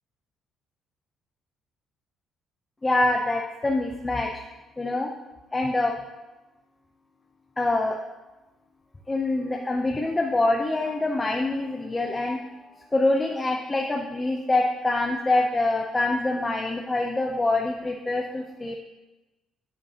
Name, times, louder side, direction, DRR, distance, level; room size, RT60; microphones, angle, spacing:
voice 1, 2.8-4.3 4.8-5.1 5.5-5.9 7.6-8.0 9.1-12.5 12.9-18.8, left 2 dB, 10° left, 1 dB, 0.5 m, -25 dB
9.6 x 8.6 x 2.8 m, 1.1 s
cardioid pair, 180°, 0 cm